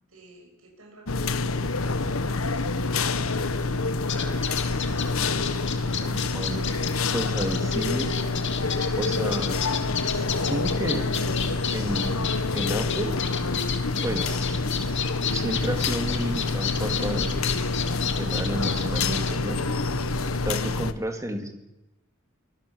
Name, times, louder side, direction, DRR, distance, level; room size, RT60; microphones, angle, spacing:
voice 1, 0.1-3.5 4.2-4.9, right 2 dB, 80° right, 1 dB, 8.0 m, -51 dB
sound 1, 1.1-20.9, left 3 dB, 80° left, 1.4 m, -27 dB
sound 2, 4.1-19.3, left 9 dB, 60° left, 2.7 m, -32 dB
voice 2, 5.9-6.6 7.1-8.1 9.0-9.6 10.1-11.1 11.7-13.1 14.0-14.6 15.3-17.4 18.0-19.6 20.4-21.5, right 1 dB, 15° right, 5 dB, 3.3 m, -31 dB
25.0 x 21.0 x 7.4 m, 0.94 s
head